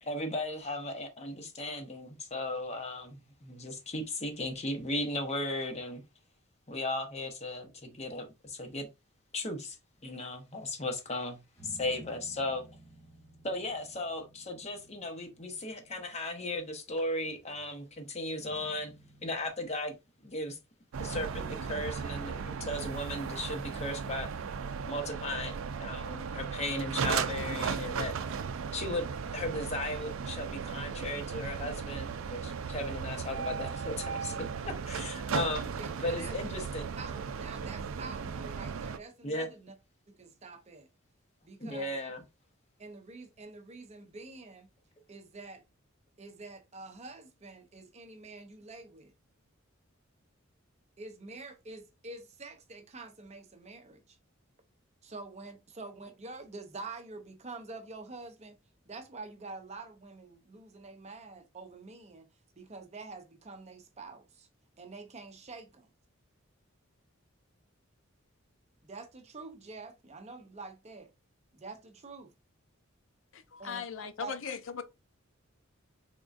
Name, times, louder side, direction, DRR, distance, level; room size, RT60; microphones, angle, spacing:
voice 1, 0.0-6.0 6.7-8.9 9.3-9.8 10.0-12.6 13.4-18.9 19.2-19.9 20.2-20.6 21.0-24.3 24.8-28.1 28.7-29.1 29.3-36.8 39.2-39.5 41.6-42.2, left 1 dB, 30° left, 0.9 m, -36 dB
sound 1, 11.5-16.5 16.9-17.7 18.4-19.5, right 1 dB, 15° left, 1.1 m, -56 dB
sound 2, 20.9-39.0, right 6 dB, 70° right, 0.4 m, -36 dB
voice 2, 35.8-36.3 37.0-39.7 40.1-40.9 41.4-42.0 42.8-44.7 45.1-45.6 46.2-49.1 51.0-54.2 55.0-58.6 58.9-62.3 62.6-64.5 64.8-65.9 68.8-71.1 71.5-72.3 73.6-74.3, right 3 dB, 35° right, 0.6 m, -47 dB
voice 3, 73.3-74.8, left 6 dB, 65° left, 0.5 m, -38 dB
3.8 x 3.5 x 2.5 m
head